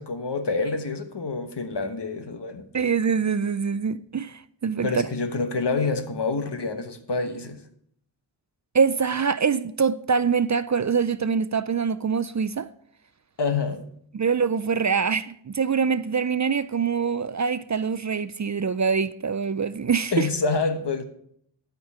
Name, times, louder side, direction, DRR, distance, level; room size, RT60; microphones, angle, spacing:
voice 1, 0.0-2.7 4.8-7.6 13.4-13.8 20.1-21.0, left 4 dB, 65° left, 1.2 m, -27 dB
voice 2, 2.7-5.1 8.7-12.7 14.1-20.3, right 6 dB, 40° right, 0.4 m, -24 dB
11.5 x 5.3 x 6.6 m
wide cardioid pair, 50°, 45 cm